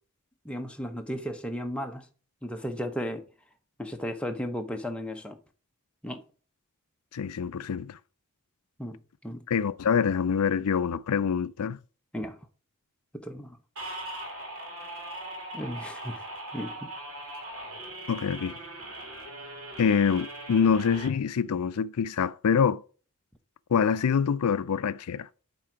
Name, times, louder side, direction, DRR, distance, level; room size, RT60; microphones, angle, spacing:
voice 1, 0.4-2.1 2.4-3.2 3.8-5.4 6.0-6.2 8.8-9.0 9.2-9.4 12.1-12.4 13.1-13.6 15.5-16.2 16.5-16.9, equal, 5° left, 0.7 m, -34 dB
voice 2, 7.1-8.0 9.5-11.8 18.1-18.6 19.8-22.8 23.7-25.3, left 6 dB, 85° left, 0.4 m, -25 dB
sound 1, 13.8-21.1, right 1 dB, 70° right, 2.6 m, -40 dB
8.8 x 3.8 x 4.5 m
head